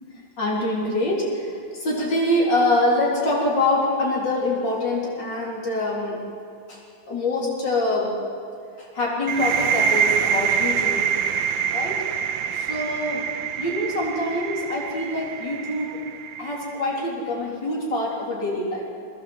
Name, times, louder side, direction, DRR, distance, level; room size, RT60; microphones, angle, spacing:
voice 1, 0.4-6.2 6.7-6.8 7.1-8.2 8.8-11.1 11.7-12.0 12.5-13.2 13.6-16.0 16.4-18.8, left 1 dB, 65° left, -3 dB, 4.2 m, -25 dB
sound 1, 9.3-16.8, right 8 dB, 75° right, 1.4 m, -25 dB
20.5 x 16.5 x 7.8 m, 2.4 s
omnidirectional pair, 2.1 m